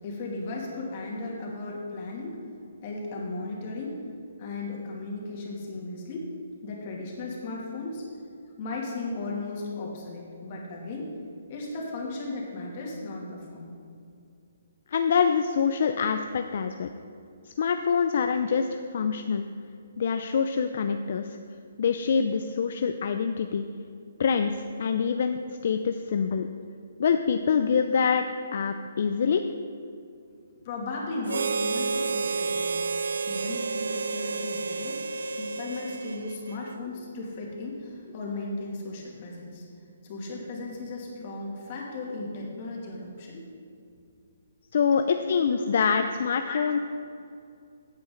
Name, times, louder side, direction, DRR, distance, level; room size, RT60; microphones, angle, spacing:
voice 1, 0.0-2.4 2.8-4.0 4.4-6.3 6.6-8.1 8.5-11.1 11.5-13.8 30.6-35.1 35.4-39.6 40.0-43.5 44.9-45.8 46.4-46.6, left 2 dB, 35° left, -2 dB, 2.5 m, -36 dB
voice 2, 14.9-16.9 17.4-19.4 20.0-21.4 21.8-23.6 24.2-26.5 27.0-28.2 28.5-29.5 44.7-46.8, left 6 dB, 55° left, 7 dB, 0.5 m, -25 dB
Harmonica, 31.3-36.8, right 4 dB, 85° right, 0.4 m, -30 dB
15.5 x 8.3 x 3.9 m, 2.5 s
hypercardioid pair, 165°, 0 cm